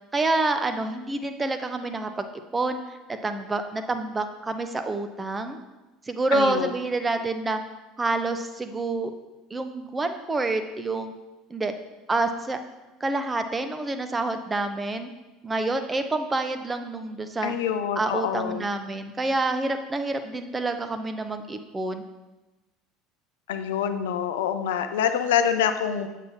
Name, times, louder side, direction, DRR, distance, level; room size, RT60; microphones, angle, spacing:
voice 1, 0.1-2.3 2.5-5.6 6.1-7.6 8.0-9.1 9.5-11.1 11.5-11.7 12.1-12.6 13.0-15.1 15.4-17.5 17.9-22.0, right 2 dB, 20° right, 7 dB, 0.7 m, -27 dB
voice 2, 6.3-6.7 17.4-18.7 23.5-26.1, left 8 dB, 70° left, 8 dB, 0.5 m, -26 dB
7.7 x 7.2 x 2.7 m, 1.1 s
figure-of-eight pair, 70°, 0 cm